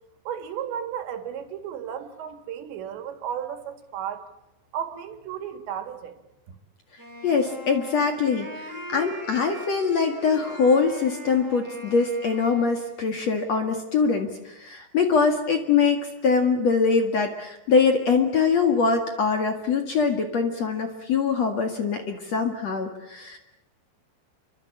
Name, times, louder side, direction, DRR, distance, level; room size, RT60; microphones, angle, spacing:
voice 1, 0.3-4.3 4.7-6.2, right 9 dB, 80° right, 8 dB, 4.4 m, -34 dB
Wind instrument woodwind instrument, 7.0-13.2, right 1 dB, 5° right, 6.9 m, -40 dB
voice 2, 7.2-8.6 8.9-14.3 14.6-23.4, left 5 dB, 50° left, 5 dB, 2.4 m, -23 dB
28.5 x 24.5 x 8.6 m, 0.86 s
omnidirectional pair, 5.1 m